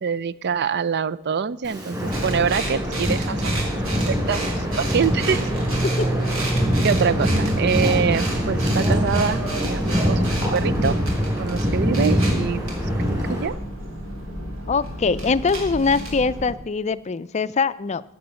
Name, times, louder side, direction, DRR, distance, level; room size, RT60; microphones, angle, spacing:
voice 1, 0.0-5.4 6.8-11.0 11.4-12.6 13.0-13.5, right 6 dB, 55° right, 18 dB, 0.5 m, -25 dB
Wind, 1.6-13.5, equal, 15° right, 4.6 m, -24 dB
sound 1, 2.1-16.5, right 1 dB, 80° right, 3.6 m, -29 dB
voice 2, 14.7-18.0, left 4 dB, 35° left, 15 dB, 0.4 m, -22 dB
14.0 x 8.6 x 6.9 m, 0.80 s
head